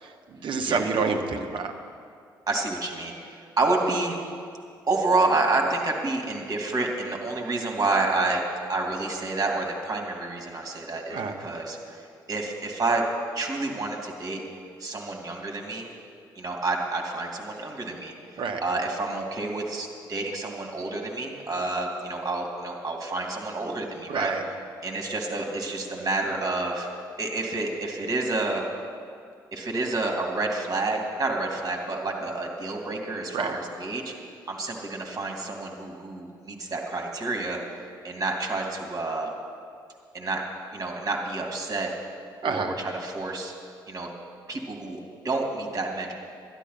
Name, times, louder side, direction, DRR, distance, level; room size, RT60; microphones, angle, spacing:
voice 1, 0.0-1.7 11.1-11.4 18.4-18.6 24.1-24.4 33.3-33.6 42.4-42.7, right 4 dB, 50° right, 6 dB, 1.2 m, -28 dB
voice 2, 2.5-3.1 3.6-4.2 4.9-8.4 8.7-13.0 13.3-14.4 14.8-15.9 16.4-18.1 18.6-24.3 24.8-26.9 27.2-28.6 29.5-34.1 34.5-37.6 38.0-39.3 40.1-40.4 40.7-41.9 42.4-43.5 43.9-44.1 44.5-46.1, right 3 dB, 35° right, 1 dB, 2.5 m, -29 dB
12.0 x 11.5 x 5.8 m, 2.2 s
figure-of-eight pair, 45°, 11 cm